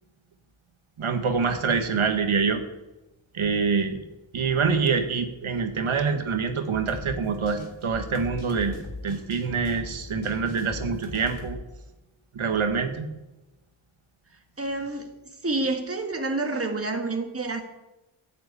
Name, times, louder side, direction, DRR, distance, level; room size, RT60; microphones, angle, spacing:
voice 1, 1.0-2.6 3.3-4.0 4.3-8.8 9.0-11.6 12.3-13.1, right 5 dB, 90° right, 6 dB, 1.6 m, -25 dB
sound 1, 6.7-11.6, left 2 dB, 75° left, 3.4 m, -39 dB
voice 2, 14.6-15.1 15.4-17.6, right 2 dB, 30° right, 4 dB, 1.9 m, -28 dB
14.5 x 7.9 x 8.5 m, 1.0 s
wide cardioid pair, 120°, 47 cm